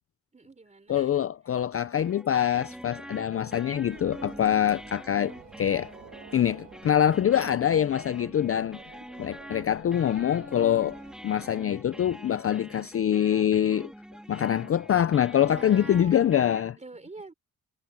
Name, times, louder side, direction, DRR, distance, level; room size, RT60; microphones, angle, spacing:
voice 1, 0.3-1.2 15.4-16.3 16.8-17.3, right 3 dB, 20° right, 3.8 m, -46 dB
voice 2, 0.9-5.9 6.3-8.9 9.2-11.0 11.2-13.9 14.3-16.8, left 10 dB, 40° left, 0.4 m, -25 dB
sound 1, 2.0-16.6, equal, ahead, 2.8 m, -45 dB
sound 2, 3.8-11.2, right 7 dB, 45° right, 1.5 m, -51 dB
wide cardioid pair, 165°, 36 cm